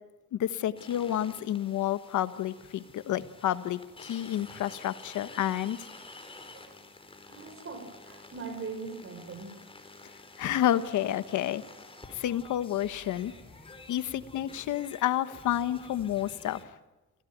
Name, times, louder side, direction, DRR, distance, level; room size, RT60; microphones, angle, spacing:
voice 1, 0.3-5.8 10.4-11.6 12.1-13.3 13.9-16.6, left 12 dB, 75° left, 12 dB, 1.3 m, -30 dB
sound 1, 0.8-16.6, left 2 dB, 20° left, 4.5 m, -50 dB
voice 2, 7.2-9.5, right 4 dB, 45° right, 8 dB, 6.6 m, -41 dB
28.5 x 16.5 x 9.3 m, 1.1 s
cardioid pair, 90°, 30 cm